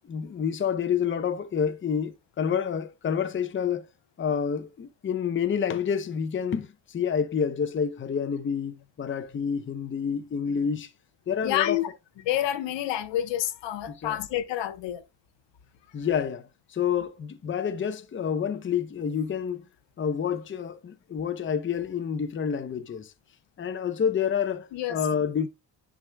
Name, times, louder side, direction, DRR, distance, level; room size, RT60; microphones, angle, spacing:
voice 1, 0.1-3.9 4.2-10.9 11.3-11.8 13.9-14.2 15.9-19.6 20.0-23.1 23.6-25.5, left 7 dB, 30° left, 0.7 m, -28 dB
voice 2, 11.4-11.9 12.2-15.0 24.7-25.0, left 12 dB, 85° left, 1.0 m, -28 dB
10.5 x 4.9 x 2.2 m
cardioid pair, 125°, 43 cm